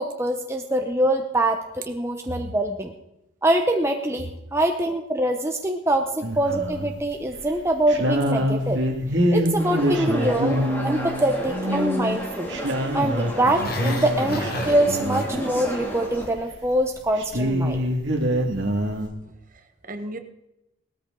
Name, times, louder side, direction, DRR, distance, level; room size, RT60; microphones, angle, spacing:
voice 1, 0.0-2.9 3.4-8.8 9.3-12.5 12.9-17.8, right 1 dB, 10° right, 4 dB, 0.8 m, -24 dB
sound 1, 6.2-6.9 7.3-7.5 7.9-15.4 16.1-16.2 16.5-16.6 16.8-19.1, equal, 55° right, 2.2 m, -25 dB
sound 2, 9.6-16.3, right 1 dB, 10° left, 2.5 m, -32 dB
Growling, 13.4-15.7 16.0-16.4 16.7-16.8, left 2 dB, 45° left, 1.7 m, -34 dB
voice 2, 19.5-20.2, right 1 dB, 40° right, 7 dB, 1.2 m, -36 dB
18.0 x 13.0 x 3.8 m, 0.86 s
head